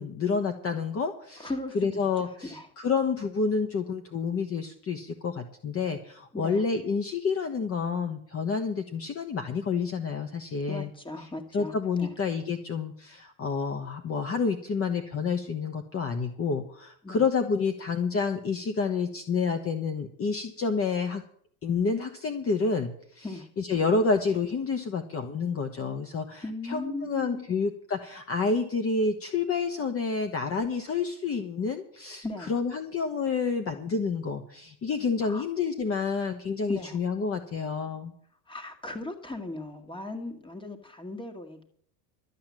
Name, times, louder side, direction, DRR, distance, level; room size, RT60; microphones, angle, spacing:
voice 1, 0.0-1.5 1.7-10.9 11.5-21.2 21.6-23.2 23.6-38.1, left 5 dB, 30° left, 7 dB, 1.2 m, -29 dB
voice 2, 1.4-2.7 6.3-6.6 10.7-12.1 17.0-17.2 23.2-23.5 26.4-27.5 32.2-32.6 35.2-35.5 36.7-37.0 38.5-41.6, left 2 dB, 10° left, 6 dB, 2.0 m, -38 dB
12.5 x 8.9 x 7.5 m, 0.64 s
supercardioid pair, 115°, 45 cm